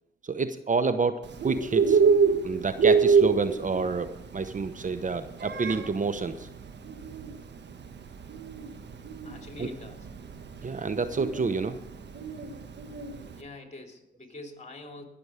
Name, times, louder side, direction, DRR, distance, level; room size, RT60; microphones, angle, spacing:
voice 1, 0.2-2.0 2.4-4.1 4.3-6.4 9.6-9.7 10.6-11.8, right 4 dB, 40° right, 11 dB, 0.9 m, -28 dB
Bird, 1.2-13.4, right 5 dB, 60° right, 1.3 m, -27 dB
voice 2, 9.2-10.1 13.3-15.1, left 2 dB, 35° left, 3 dB, 3.1 m, -44 dB
19.0 x 7.0 x 5.0 m, 0.87 s
supercardioid pair, 50°, 20 cm